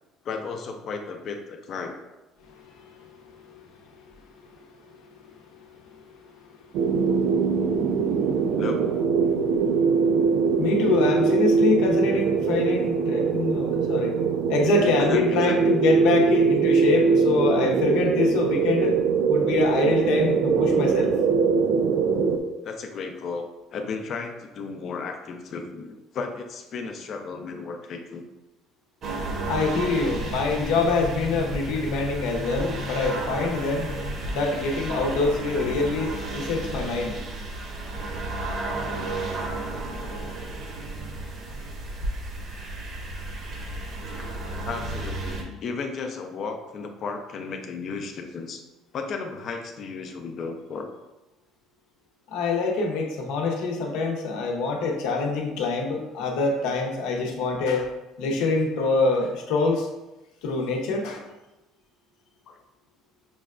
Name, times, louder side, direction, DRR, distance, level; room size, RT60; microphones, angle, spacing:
voice 1, 0.2-2.0 8.6-8.8 15.0-15.7 22.6-28.3 29.6-29.7 44.7-48.6 48.9-50.9 62.5-62.6, left 4 dB, 45° left, 4 dB, 0.5 m, -34 dB
sound 1, 6.7-22.4, right 5 dB, 70° right, 0.3 m, -22 dB
voice 2, 10.6-14.2 14.5-19.0 19.3-21.1 29.5-33.9 34.3-37.1 52.3-57.9 58.2-59.9 60.4-61.2, left 3 dB, 80° left, 1 dB, 0.7 m, -25 dB
sound 2, 29.0-45.4, right 2 dB, 50° right, 0.8 m, -33 dB
Bowed string instrument, 30.4-34.6, left 2 dB, 85° right, 1.2 m, -38 dB
5.9 x 2.2 x 2.4 m, 1.0 s
cardioid pair, 130°, 0 cm